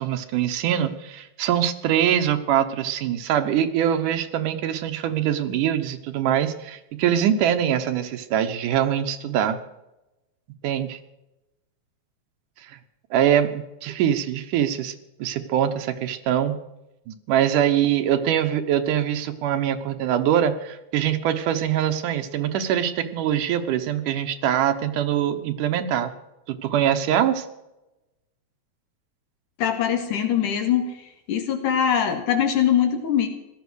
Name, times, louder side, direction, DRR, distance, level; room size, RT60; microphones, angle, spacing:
voice 1, 0.0-9.6 10.6-11.0 13.1-14.9 15.2-16.6 17.1-26.1 26.5-27.5, right 10 dB, 85° right, 8 dB, 2.6 m, -23 dB
voice 2, 29.6-30.9 31.3-33.3, left 9 dB, 85° left, 4 dB, 3.5 m, -22 dB
17.0 x 12.5 x 6.4 m, 0.96 s
omnidirectional pair, 3.5 m